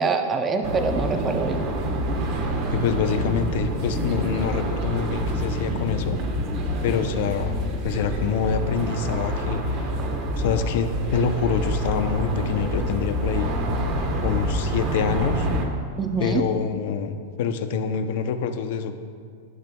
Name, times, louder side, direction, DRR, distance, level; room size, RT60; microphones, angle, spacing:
voice 1, 0.0-1.6 16.0-16.4, right 4 dB, 20° right, 5 dB, 0.6 m, -24 dB
sound 1, 0.6-15.6, equal, 45° right, 1.0 m, -27 dB
voice 2, 2.7-6.2 6.8-7.6 7.8-10.0 10.4-13.5 14.2-15.5 16.2-19.0, left 6 dB, 60° left, 9 dB, 0.6 m, -26 dB
13.5 x 6.0 x 2.3 m, 2.1 s
supercardioid pair, 145°, 0 cm